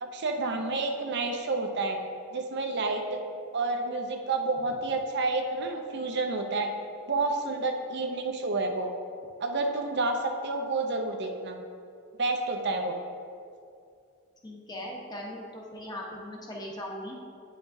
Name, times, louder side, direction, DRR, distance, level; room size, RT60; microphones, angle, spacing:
voice 1, 0.0-2.0 2.3-3.2 3.5-6.7 7.1-8.9 9.4-11.5 12.2-13.0, right 3 dB, 55° right, 4 dB, 0.6 m, -29 dB
voice 2, 14.4-17.2, left 1 dB, 20° left, -2 dB, 0.9 m, -39 dB
9.4 x 5.8 x 2.6 m, 2.4 s
head